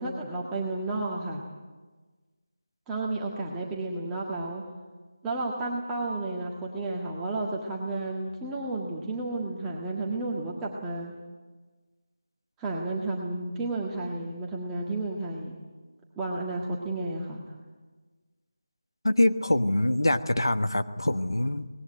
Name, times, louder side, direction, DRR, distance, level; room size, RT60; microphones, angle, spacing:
voice 1, 0.0-1.4 2.9-4.6 5.2-11.1 12.6-15.5 16.2-17.4, right 2 dB, 10° right, -3 dB, 1.6 m, -32 dB
voice 2, 19.0-21.7, left 1 dB, 75° left, 10 dB, 1.3 m, -24 dB
24.0 x 20.0 x 9.2 m, 1.4 s
figure-of-eight pair, 160°, 2 cm